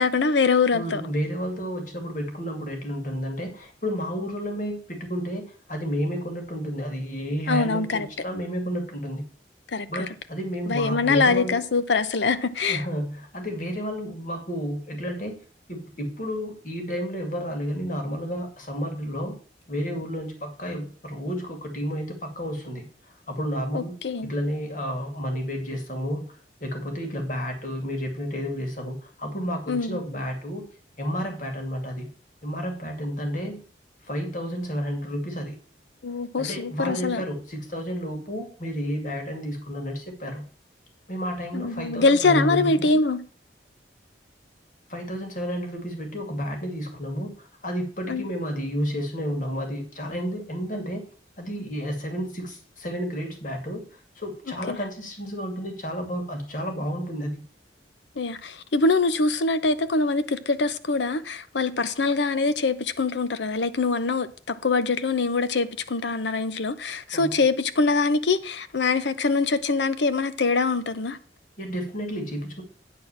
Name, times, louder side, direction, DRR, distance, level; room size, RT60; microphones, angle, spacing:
voice 1, 0.0-1.0 7.5-8.1 9.7-10.1 10.7-12.8 23.7-24.3 29.7-30.0 36.0-37.2 41.5-43.2 48.1-48.3 54.7-54.8 58.2-71.2, left 3 dB, 75° left, 0.8 m, -24 dB
voice 2, 0.7-9.2 9.9-11.6 12.7-15.4 15.7-19.4 19.7-22.9 23.3-23.9 24.2-26.2 26.6-30.7 31.0-32.1 32.4-33.6 34.0-35.6 36.4-40.4 41.1-42.9 44.9-51.1 51.4-53.8 54.2-57.4 67.1-67.4 71.6-72.6, equal, 45° left, 2.3 m, -31 dB
9.5 x 4.3 x 7.1 m
head